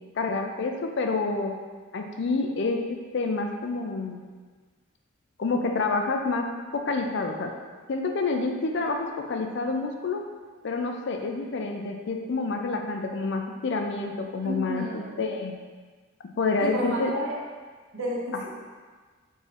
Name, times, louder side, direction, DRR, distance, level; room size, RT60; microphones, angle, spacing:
voice 1, 0.2-1.5 1.9-4.2 5.4-7.5 7.9-10.2 10.6-15.5 16.4-17.1, left 3 dB, 55° left, 4 dB, 0.4 m, -28 dB
voice 2, 14.4-15.2 16.6-17.3 17.9-18.5, equal, 75° right, -5 dB, 1.2 m, -31 dB
4.6 x 2.6 x 4.2 m, 1.5 s
head